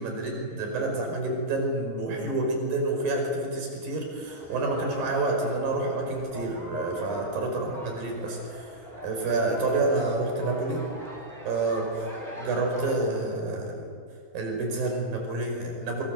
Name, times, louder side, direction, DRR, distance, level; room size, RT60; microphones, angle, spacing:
voice 1, 0.0-8.7 9.0-10.8 11.4-12.0 12.4-13.9 14.3-16.0, right 2 dB, 60° right, 2 dB, 6.9 m, -28 dB
sound 1, 4.3-12.9, equal, 10° right, 4.7 m, -42 dB
26.5 x 25.5 x 7.8 m, 2.2 s
omnidirectional pair, 4.7 m